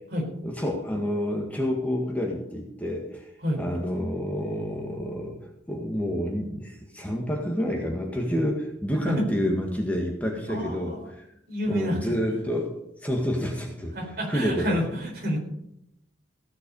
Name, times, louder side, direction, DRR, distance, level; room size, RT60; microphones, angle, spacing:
voice 1, 0.4-3.3 3.6-5.4 5.7-11.2 11.7-12.7 13.0-13.9 14.3-14.8, equal, 10° left, 0 dB, 1.8 m, -28 dB
voice 2, 10.5-11.1 11.5-12.0 13.9-15.4, equal, 55° right, 0 dB, 4.1 m, -28 dB
16.0 x 8.0 x 5.5 m, 0.79 s
head